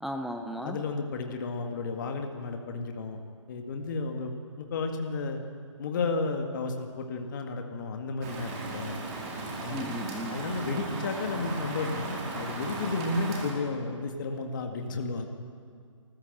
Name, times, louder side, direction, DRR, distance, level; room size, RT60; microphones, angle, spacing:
voice 1, 0.0-0.8 9.7-10.4, equal, ahead, 5 dB, 0.5 m, -35 dB
voice 2, 0.6-3.2 3.5-5.4 5.8-9.0 9.6-10.0 10.3-15.3, left 3 dB, 40° left, 4 dB, 1.9 m, -33 dB
Rain, 8.2-13.5, right 3 dB, 25° right, 4.5 m, -36 dB
27.0 x 14.5 x 8.0 m, 2.2 s
figure-of-eight pair, 145°, 16 cm